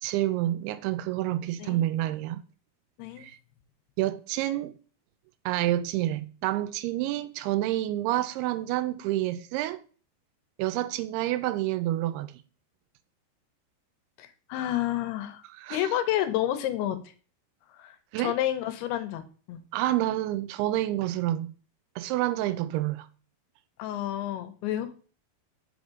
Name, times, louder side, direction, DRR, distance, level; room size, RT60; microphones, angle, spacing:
voice 1, 0.0-2.4 3.2-3.4 4.0-4.7 5.5-9.8 10.6-12.4 15.6-15.9 18.1-18.3 19.7-21.5 22.0-23.1, right 14 dB, 85° right, 2.5 m, -28 dB
voice 2, 14.2-15.4 15.7-17.1 17.7-19.6 23.8-24.9, left 12 dB, 85° left, 2.7 m, -30 dB
6.0 x 3.6 x 5.1 m
omnidirectional pair, 4.5 m